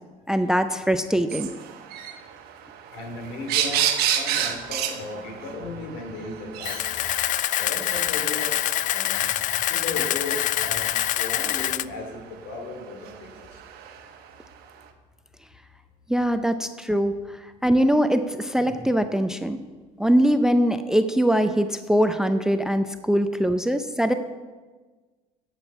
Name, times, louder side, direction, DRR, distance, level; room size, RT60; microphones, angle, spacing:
voice 1, 0.3-1.5 16.1-17.2 17.6-19.6 20.0-24.1, equal, 5° right, 10 dB, 0.6 m, -22 dB
sound 1, 1.3-14.6, right 10 dB, 65° right, 1.1 m, -32 dB
voice 2, 2.9-7.1 7.6-13.6, left 2 dB, 70° left, 3 dB, 2.9 m, -36 dB
Camera, 6.6-11.8, left 13 dB, 50° left, 0.4 m, -25 dB
10.5 x 7.4 x 5.8 m, 1.3 s
hypercardioid pair, 70°, 17 cm